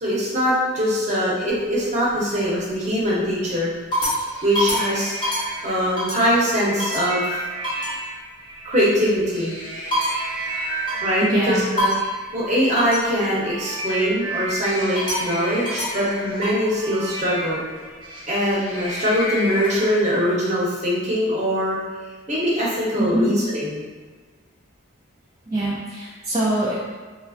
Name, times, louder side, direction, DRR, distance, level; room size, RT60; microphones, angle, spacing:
voice 1, 0.0-3.7 4.4-5.2 5.6-7.5 8.6-9.6 11.0-11.9 12.3-17.6 18.3-21.8 22.3-23.9, equal, 35° right, -6 dB, 0.8 m, -22 dB
sound 1, 1.6-2.2 2.7-3.1 3.6-6.4 6.8-7.1 7.6-8.0 9.1-11.3 11.8-12.2 12.8-13.1 14.6-16.7 18.0-20.0, equal, 25° left, 0.8 m, -28 dB
sound 2, 6.6-9.6 10.0-19.0 19.8-19.9, right 2 dB, 90° right, 0.5 m, -33 dB
voice 2, 11.3-11.6 23.0-23.3 25.5-26.9, right 1 dB, 20° right, -9 dB, 0.4 m, -23 dB
3.2 x 2.5 x 2.3 m, 1.5 s
head